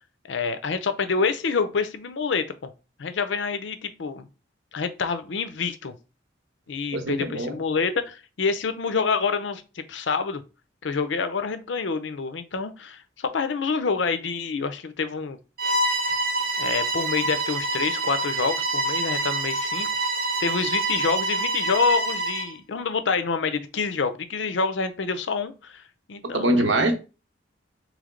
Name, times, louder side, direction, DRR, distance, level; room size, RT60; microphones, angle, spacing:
voice 1, 0.3-2.7 3.0-4.3 4.7-5.9 6.7-10.4 10.8-15.4 16.6-19.9 20.4-25.8 26.1-26.6, left 5 dB, 85° left, 10 dB, 0.6 m, -27 dB
voice 2, 6.9-7.6 26.3-27.0, right 1 dB, 85° right, 6 dB, 0.9 m, -23 dB
Bowed string instrument, 15.6-22.5, right 2 dB, 50° right, 0.7 m, -26 dB
3.4 x 3.2 x 3.7 m, 0.32 s
head